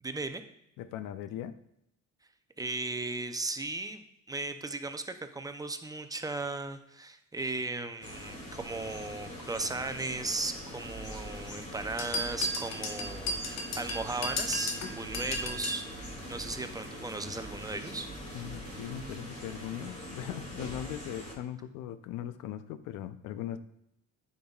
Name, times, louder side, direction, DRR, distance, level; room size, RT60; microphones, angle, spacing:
voice 1, 0.0-0.4 2.6-18.1, right 3 dB, 10° right, 8 dB, 0.5 m, -36 dB
voice 2, 0.8-1.6 18.3-23.6, left 11 dB, 85° left, 12 dB, 0.6 m, -39 dB
sound 1, 8.0-21.3, left 1 dB, 25° left, 2.4 m, -43 dB
sound 2, 10.8-19.2, right 2 dB, 50° right, 1.2 m, -49 dB
sound 3, 12.0-15.8, left 2 dB, 55° left, 1.2 m, -34 dB
9.3 x 5.3 x 2.4 m, 0.78 s
cardioid pair, 105°, 31 cm